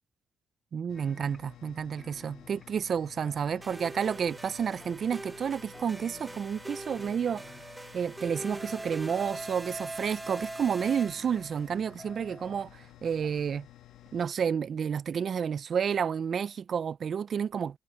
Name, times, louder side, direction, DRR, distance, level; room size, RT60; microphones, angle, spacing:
voice 1, 0.7-7.4 7.9-13.7 14.1-17.8, right 7 dB, 55° right, 0.5 m, -30 dB
sound 1, 0.9-14.3, left 14 dB, 85° left, 1.8 m, -54 dB
sound 2, 0.9-1.7 2.0-4.2 4.8-5.5 5.7-6.7 7.0-7.9 8.2-9.2 9.8-11.6 12.0-12.9 13.2-13.3, left 1 dB, 10° left, 1.2 m, -53 dB
sound 3, 3.6-11.7, right 2 dB, 15° right, 0.9 m, -42 dB
cardioid pair, 90°, 0 cm